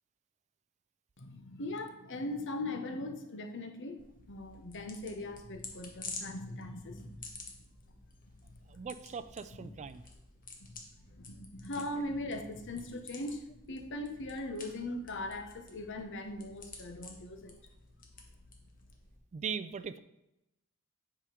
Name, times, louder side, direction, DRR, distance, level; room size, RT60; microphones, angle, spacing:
voice 1, 1.2-4.0 4.3-7.3 9.6-9.7 10.6-10.8 11.1-17.6, left 1 dB, 60° left, 6 dB, 1.0 m, -40 dB
sound 1, 4.0-19.2, left 3 dB, 40° left, 1.3 m, -51 dB
voice 2, 8.7-10.0 19.3-20.0, right 6 dB, 30° right, 13 dB, 0.3 m, -39 dB
8.4 x 5.0 x 5.0 m, 0.88 s
head